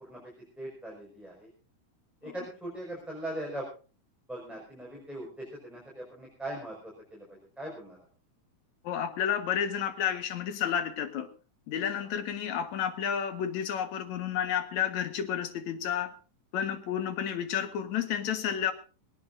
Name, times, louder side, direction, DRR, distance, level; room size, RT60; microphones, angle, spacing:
voice 1, 0.0-1.5 2.2-3.7 4.3-8.0 11.9-12.0, right 1 dB, ahead, -3 dB, 5.1 m, -40 dB
voice 2, 8.8-11.3 11.7-16.1 16.5-18.7, left 9 dB, 65° left, 9 dB, 2.7 m, -31 dB
19.5 x 19.0 x 2.6 m, 0.35 s
omnidirectional pair, 3.7 m